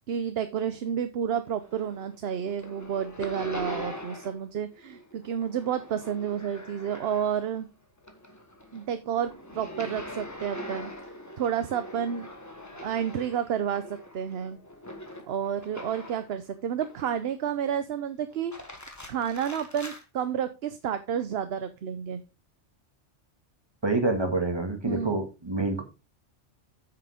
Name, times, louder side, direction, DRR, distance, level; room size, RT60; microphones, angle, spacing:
voice 1, 0.1-7.7 8.7-10.9 11.4-12.3 12.7-14.6 15.3-18.5 18.9-22.2 24.9-25.2, right 8 dB, 60° right, 10 dB, 0.9 m, -30 dB
sound 1, 1.4-2.2 2.4-4.5 4.7-7.6 8.0-16.3 16.8-17.5 18.3-20.0, left 1 dB, 15° left, 1.3 m, -42 dB
voice 2, 23.8-25.8, right 2 dB, 20° right, 4 dB, 1.8 m, -27 dB
8.8 x 6.7 x 3.5 m, 0.28 s
omnidirectional pair, 1.2 m